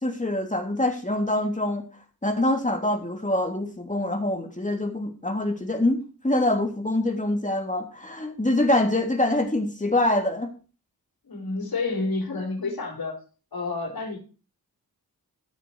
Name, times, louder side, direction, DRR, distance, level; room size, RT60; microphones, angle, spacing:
voice 1, 0.0-1.8 2.2-10.5, left 1 dB, 20° left, 3 dB, 3.0 m, -25 dB
voice 2, 11.2-13.2 13.5-14.2, left 3 dB, 70° left, 1 dB, 4.7 m, -29 dB
14.5 x 6.7 x 4.8 m, 0.36 s
cardioid pair, 45°, 37 cm